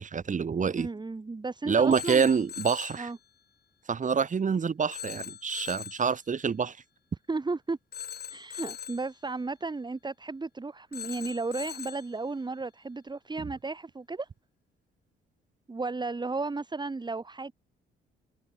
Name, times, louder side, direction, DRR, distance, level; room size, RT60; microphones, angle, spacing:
voice 1, 0.0-0.9 1.7-3.1 3.9-6.8, right 6 dB, 40° right, 2.8 m, -27 dB
voice 2, 0.8-2.3 3.0-3.2 7.3-7.8 8.3-14.3 15.7-17.5, right 3 dB, 20° right, 3.0 m, -34 dB
Telephone, 1.9-3.1 4.9-6.1 7.9-9.1 10.9-12.1, left 8 dB, 55° left, 4.5 m, -41 dB
cardioid pair, 90°, 20 cm